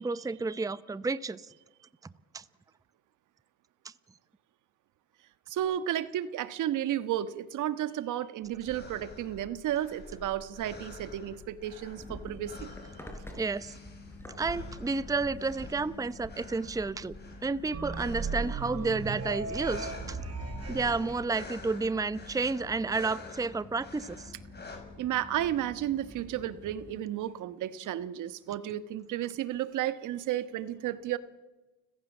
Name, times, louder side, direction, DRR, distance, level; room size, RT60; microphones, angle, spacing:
voice 1, 0.0-1.5 2.3-2.4 3.8-3.9 13.3-13.7 14.4-17.1 17.4-20.2 20.7-24.3, right 3 dB, 10° right, 16 dB, 0.7 m, -31 dB
voice 2, 5.5-12.7 25.0-31.2, right 12 dB, 70° right, 13 dB, 1.5 m, -33 dB
sound 1, 8.4-24.8, left 2 dB, 30° left, 6.6 m, -48 dB
sound 2, 11.9-27.0, left 2 dB, 5° left, 5.6 m, -47 dB
sound 3, 17.7-21.1, right 4 dB, 45° right, 5.5 m, -36 dB
29.5 x 15.5 x 7.4 m, 1.2 s
cardioid pair, 95°, 32 cm